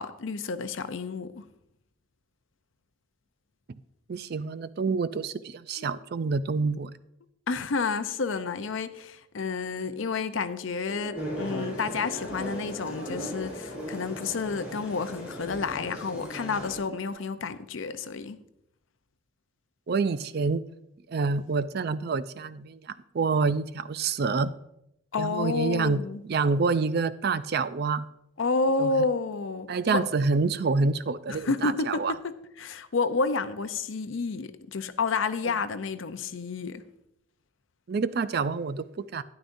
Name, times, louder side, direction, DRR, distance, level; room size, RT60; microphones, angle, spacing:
voice 1, 0.0-1.4 5.8-6.0 7.5-18.4 25.1-26.2 28.4-30.1 31.3-36.8, left 4 dB, 70° left, 0.6 m, -30 dB
voice 2, 4.1-6.9 19.9-20.6 21.1-24.5 25.2-28.1 28.8-28.9 29.7-32.1 37.9-39.2, right 4 dB, 50° right, 0.4 m, -27 dB
sound 1, 10.9-17.1, left 1 dB, 50° left, 2.2 m, -43 dB
sound 2, 11.2-16.8, equal, 5° right, 4.2 m, -38 dB
12.5 x 10.5 x 2.6 m
head